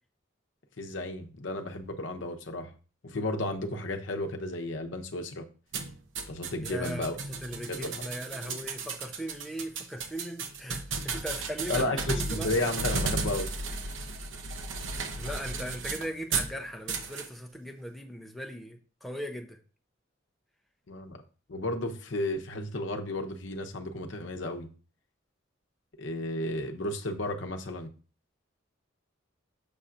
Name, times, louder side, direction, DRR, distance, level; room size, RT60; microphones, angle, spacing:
voice 1, 0.8-2.7 3.0-5.4 6.3-7.1 7.7-8.0 8.4-8.6 11.7-13.5 20.9-21.2 21.5-24.7 26.0-27.9, left 1 dB, 70° left, 4 dB, 0.8 m, -33 dB
sound 1, 5.7-16.5 16.9-17.3, right 3 dB, 75° right, 0.8 m, -34 dB
voice 2, 6.6-12.5 15.1-19.6, equal, ahead, 2 dB, 0.7 m, -39 dB
6.8 x 5.6 x 2.5 m, 0.36 s
head